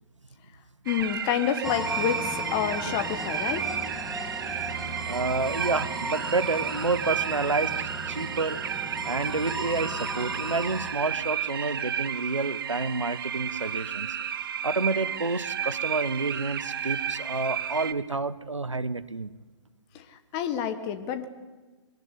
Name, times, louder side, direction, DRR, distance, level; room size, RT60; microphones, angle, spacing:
voice 1, 0.8-3.7 19.9-21.3, left 9 dB, 25° left, 9 dB, 1.5 m, -29 dB
sound 1, 0.9-17.9, right 8 dB, 45° right, 1.4 m, -32 dB
sound 2, 1.6-10.9, right 1 dB, ahead, 2.2 m, -36 dB
voice 2, 5.1-8.6 9.0-14.1 14.6-19.3, right 3 dB, 80° right, 16 dB, 1.2 m, -29 dB
23.5 x 20.0 x 9.8 m, 1.3 s
figure-of-eight pair, 130°, 16 cm